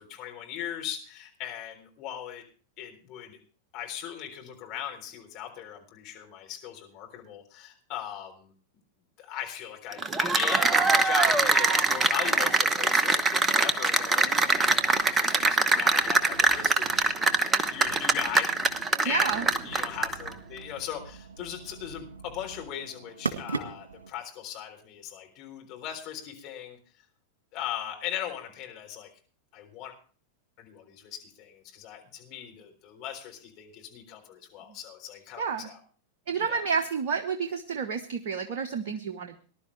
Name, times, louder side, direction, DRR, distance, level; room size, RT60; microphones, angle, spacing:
voice 1, 0.0-2.4 2.8-3.4 3.7-8.5 9.2-18.5 19.0-26.8 27.5-29.1 29.5-29.9 30.6-35.8 36.4-36.7, left 10 dB, 40° left, 2 dB, 3.7 m, -39 dB
Cheering / Applause, 9.9-20.3, right 3 dB, 15° right, 1.0 m, -23 dB
sound 1, 11.2-24.1, right 4 dB, 70° right, 1.8 m, -43 dB
voice 2, 19.1-19.5 35.4-35.7 36.3-39.4, right 6 dB, 55° right, 9 dB, 0.9 m, -30 dB
19.5 x 11.5 x 3.3 m, 0.39 s
figure-of-eight pair, 90°, 0 cm